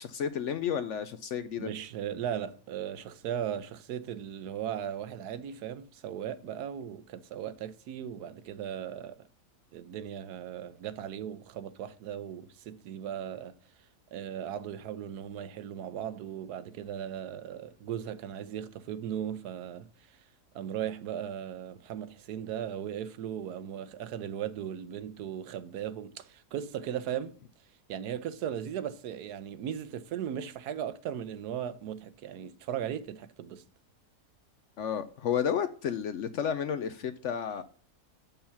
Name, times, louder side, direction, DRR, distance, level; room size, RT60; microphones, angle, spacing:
voice 1, 0.0-1.7 34.8-37.6, left 8 dB, 65° left, 0.7 m, -32 dB
voice 2, 1.6-9.3 9.7-13.6 14.1-19.9 20.5-27.3 27.9-33.6, right 9 dB, 85° right, 1.3 m, -37 dB
7.0 x 5.5 x 5.8 m
omnidirectional pair, 1.6 m